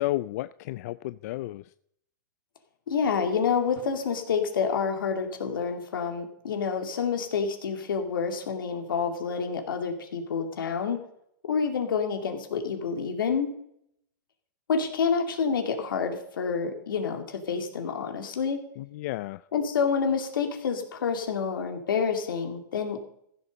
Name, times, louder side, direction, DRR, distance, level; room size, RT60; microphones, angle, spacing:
voice 1, 0.0-1.7 18.8-19.4, left 17 dB, 50° left, 14 dB, 0.4 m, -32 dB
voice 2, 2.9-11.0 11.4-13.5 14.7-18.6 19.5-23.0, left 6 dB, 85° left, 5 dB, 2.5 m, -28 dB
15.0 x 7.0 x 5.2 m, 0.71 s
hypercardioid pair, 145°, 11 cm